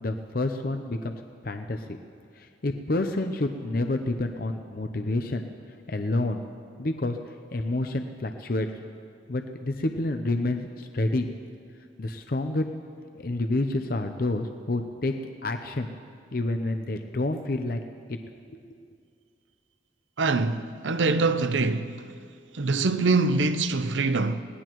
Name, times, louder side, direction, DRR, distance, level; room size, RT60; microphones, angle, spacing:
voice 1, 0.0-1.8 2.4-5.4 5.9-6.4 6.8-7.2 7.5-8.7 9.3-11.3 12.0-12.7 13.2-15.1 15.4-15.9 16.3-17.8 18.5-18.6, left 2 dB, 50° left, 0.7 m, -28 dB
voice 2, 20.2-22.0 22.5-24.4, right 3 dB, 90° right, 0.7 m, -24 dB
21.0 x 18.0 x 3.1 m
head